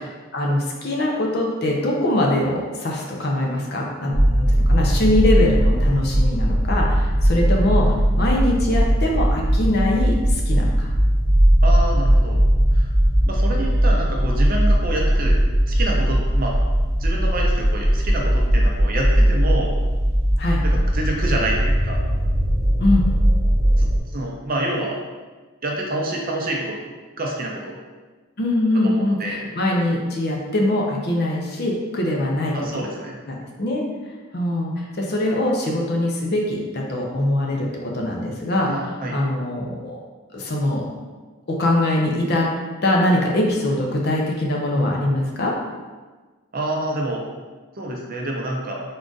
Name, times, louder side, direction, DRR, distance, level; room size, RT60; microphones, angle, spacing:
voice 1, 0.3-7.9 8.2-10.9 20.4-20.6 22.8-23.0 28.4-32.5 33.3-33.8 34.3-38.8 39.1-40.0 40.3-40.8 41.5-42.5 42.8-45.5, left 1 dB, 50° left, -1 dB, 0.6 m, -22 dB
sound 1, 4.1-24.0, equal, 80° left, 1.1 m, -19 dB
voice 2, 11.6-12.4 12.7-12.9 13.2-15.4 15.7-16.5 17.0-19.7 20.6-22.0 23.8-23.9 24.1-25.0 25.6-26.8 27.2-27.8 28.7-29.4 32.5-33.1 38.7-39.2 46.5-47.3 47.8-48.8, right 1 dB, 40° right, -1 dB, 0.6 m, -27 dB
3.7 x 2.4 x 3.8 m, 1.3 s
head